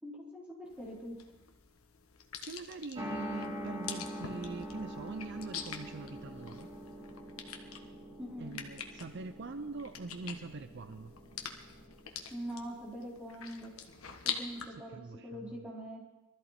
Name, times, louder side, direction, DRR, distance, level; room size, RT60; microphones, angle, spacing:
voice 1, 0.0-1.2 8.2-8.6 12.3-13.7 14.2-15.0 15.2-16.0, equal, 5° right, -6 dB, 4.4 m, -43 dB
sound 1, 0.7-14.7, left 8 dB, 85° left, 1.3 m, -45 dB
voice 2, 2.4-6.7 8.4-11.1 14.6-15.7, right 3 dB, 55° right, 10 dB, 0.5 m, -43 dB
sound 2, 3.0-13.8, equal, 25° right, 2.8 m, -45 dB
sound 3, 4.2-12.0, left 1 dB, 50° left, 2.4 m, -58 dB
22.0 x 13.5 x 4.3 m, 1.1 s
head